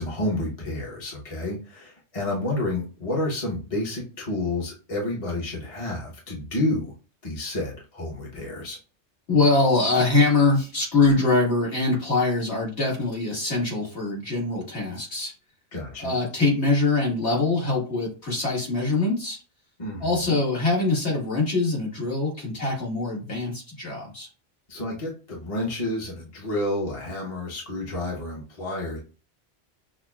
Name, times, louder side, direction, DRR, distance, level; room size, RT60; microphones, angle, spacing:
voice 1, 0.0-6.9 7.2-8.8 15.7-16.2 19.8-20.4 24.7-29.0, left 1 dB, 30° left, -3 dB, 1.0 m, -30 dB
voice 2, 9.3-15.3 16.0-19.4 20.0-24.3, left 3 dB, 70° left, -4 dB, 2.0 m, -23 dB
6.1 x 2.2 x 2.3 m, 0.35 s
omnidirectional pair, 1.2 m